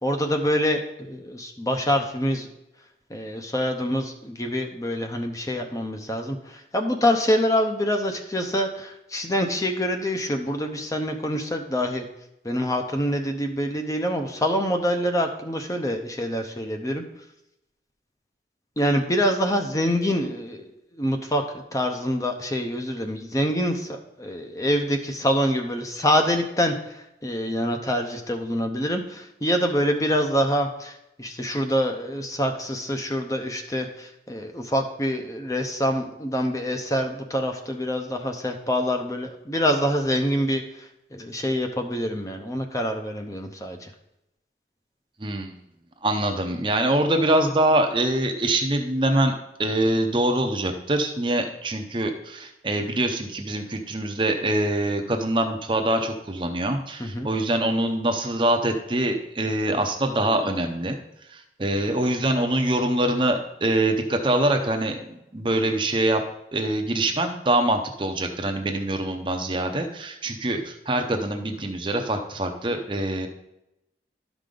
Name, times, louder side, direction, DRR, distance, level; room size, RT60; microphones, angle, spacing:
voice 1, 0.0-2.5 3.1-12.0 12.4-17.0 18.8-20.6 20.9-21.4 21.7-43.9 57.0-57.3, equal, 20° left, 4 dB, 0.7 m, -26 dB
voice 2, 45.2-45.5 46.0-49.3 49.6-61.0 61.3-66.2 66.5-73.3, right 1 dB, 30° right, 5 dB, 0.6 m, -24 dB
12.0 x 5.1 x 3.8 m, 0.88 s
head